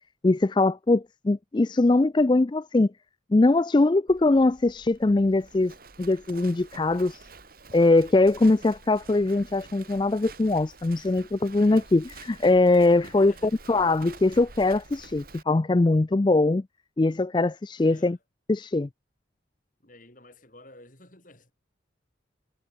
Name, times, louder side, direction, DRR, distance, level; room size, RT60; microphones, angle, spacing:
voice 1, 0.2-2.9 3.3-7.2 7.7-16.6 17.0-18.2 18.5-18.9, left 2 dB, 25° left, 0.4 m, -22 dB
Livestock farm animals working animals, 4.1-15.4, right 4 dB, 50° right, 2.7 m, -48 dB
voice 2, 13.0-13.6 17.8-18.2 19.8-21.5, left 1 dB, 45° left, 8.0 m, -51 dB
head